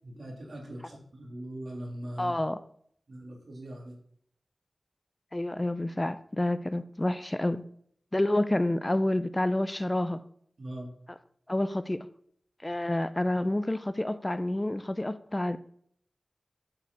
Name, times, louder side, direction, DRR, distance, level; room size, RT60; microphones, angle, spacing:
voice 1, 0.0-2.3 3.1-3.9 10.6-10.9, right 1 dB, 70° right, 2.9 m, -41 dB
voice 2, 2.2-2.6 5.3-7.6 8.1-10.2 11.5-12.1 12.6-15.6, left 1 dB, 20° left, 0.5 m, -28 dB
7.9 x 4.8 x 6.9 m
wide cardioid pair, 60°, 0 cm